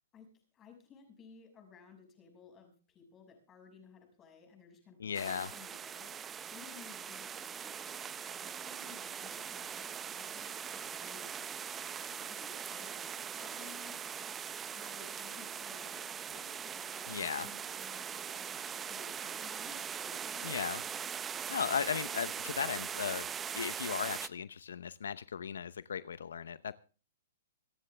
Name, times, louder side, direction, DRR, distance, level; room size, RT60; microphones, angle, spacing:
voice 1, 0.5-20.6, left 5 dB, 20° left, 5 dB, 6.3 m, -57 dB
voice 2, 5.0-5.5 17.1-17.5 20.4-20.8 21.5-23.2 23.5-26.7, left 7 dB, 80° left, 16 dB, 0.8 m, -36 dB
sound 1, 5.1-24.3, right 8 dB, 15° right, 0.6 m, -41 dB
26.0 x 10.0 x 3.4 m, 0.38 s
hypercardioid pair, 150°, 0 cm